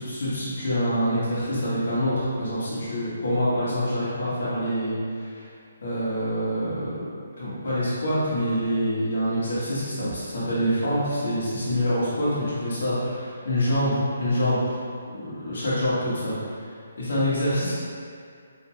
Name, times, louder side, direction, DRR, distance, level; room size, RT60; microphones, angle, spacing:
voice 1, 0.0-5.5 5.8-7.1 7.4-14.8 15.1-16.7 17.0-17.7, equal, 65° left, -10 dB, 1.3 m, -26 dB
4.5 x 2.8 x 2.2 m, 2.3 s
hypercardioid pair, 150°, 0 cm